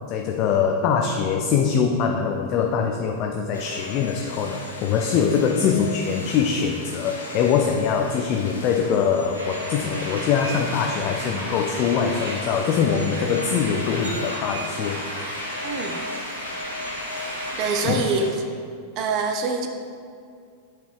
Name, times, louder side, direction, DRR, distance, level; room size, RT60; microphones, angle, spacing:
voice 1, 0.1-15.1 17.8-18.1, left 6 dB, 40° left, 3 dB, 0.5 m, -23 dB
sound 1, 3.5-18.3, left 2 dB, 75° left, 1.2 m, -37 dB
sound 2, 9.3-17.8, right 1 dB, 75° right, 1.7 m, -34 dB
voice 2, 15.6-16.0 17.5-18.4 19.0-19.7, right 4 dB, 40° right, 5 dB, 0.6 m, -25 dB
7.7 x 4.8 x 4.9 m, 2.3 s
figure-of-eight pair, 90°, 0 cm